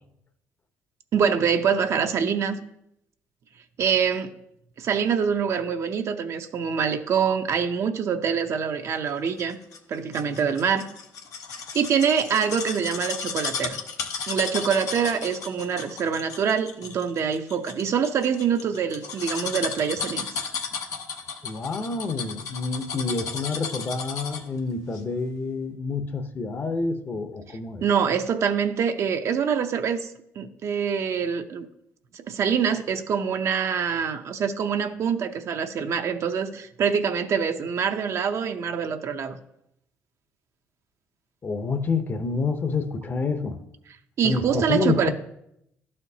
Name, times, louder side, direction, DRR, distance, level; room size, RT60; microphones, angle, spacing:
voice 1, 1.1-2.6 3.8-4.3 4.8-9.6 9.9-10.9 11.7-13.8 14.3-20.3 27.8-30.1 30.4-31.7 32.1-39.4 44.2-45.1, right 7 dB, 60° right, 7 dB, 0.6 m, -25 dB
sound 1, 9.4-24.6 24.9-25.0, left 6 dB, 70° left, 0.8 m, -34 dB
voice 2, 21.4-27.8 41.4-43.6 44.2-45.1, left 4 dB, 35° left, 8 dB, 0.7 m, -28 dB
12.0 x 4.3 x 2.8 m, 0.78 s
cardioid pair, 85°, 6 cm